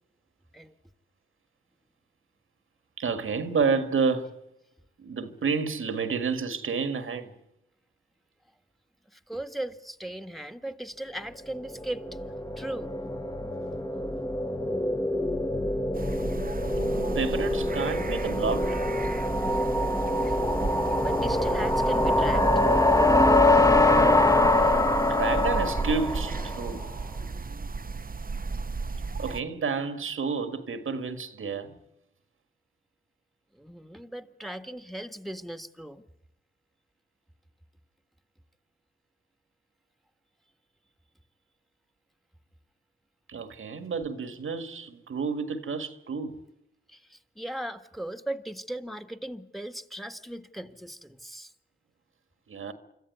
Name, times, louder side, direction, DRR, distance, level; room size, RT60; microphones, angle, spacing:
voice 1, 3.0-4.4 5.0-7.3 16.7-18.8 25.1-26.8 29.2-31.8 43.3-46.4 52.5-52.7, right 5 dB, 85° right, 1.8 m, -30 dB
voice 2, 9.1-12.2 12.6-12.9 13.3-13.4 20.2-20.4 21.0-22.5 33.5-36.0 46.9-51.5, right 1 dB, ahead, 1.7 m, -38 dB
sound 1, 11.5-26.7, left 1 dB, 15° left, 1.5 m, -24 dB
sound 2, 15.9-29.4, right 4 dB, 45° right, 0.9 m, -34 dB
26.0 x 14.0 x 9.6 m
cardioid pair, 40°, 20 cm